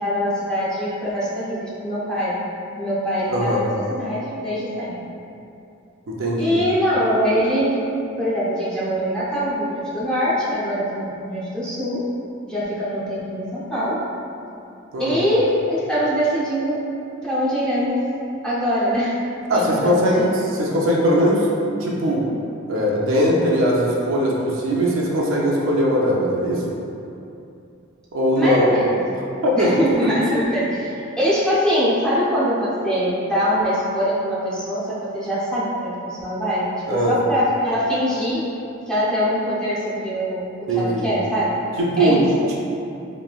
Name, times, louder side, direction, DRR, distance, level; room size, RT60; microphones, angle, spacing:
voice 1, 0.0-2.4 2.8-4.9 6.4-7.8 8.2-12.0 12.4-14.0 15.0-16.8 17.2-18.0 18.4-19.1 19.5-20.2 28.4-28.9 29.6-38.4 38.9-40.5 40.7-41.6 42.0-42.3, equal, 5° left, -10 dB, 0.5 m, -23 dB
voice 2, 3.3-3.6 6.1-6.6 14.9-15.2 19.5-21.5 21.8-22.3 22.7-26.8 28.1-28.7 29.4-29.7 30.0-30.1 36.9-37.1 40.7-41.1 41.8-42.2, equal, 85° right, -3 dB, 0.5 m, -20 dB
3.1 x 2.6 x 2.3 m, 2.7 s
head